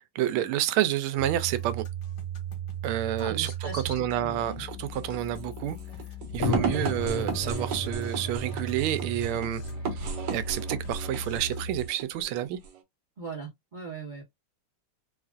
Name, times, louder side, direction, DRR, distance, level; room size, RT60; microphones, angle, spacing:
voice 1, 0.1-1.8 2.8-5.8 6.3-9.6 9.9-12.6, right 12 dB, 85° right, 1.4 m, -29 dB
sound 1, 1.2-11.9, right 5 dB, 85° left, 2.1 m, -36 dB
voice 2, 3.2-4.6 13.2-14.2, right 4 dB, 45° right, 0.6 m, -39 dB
sound 2, 4.6-12.8, right 5 dB, 60° right, 1.3 m, -36 dB
sound 3, 6.4-11.1, left 6 dB, 65° left, 1.2 m, -36 dB
4.2 x 2.4 x 2.4 m
omnidirectional pair, 2.3 m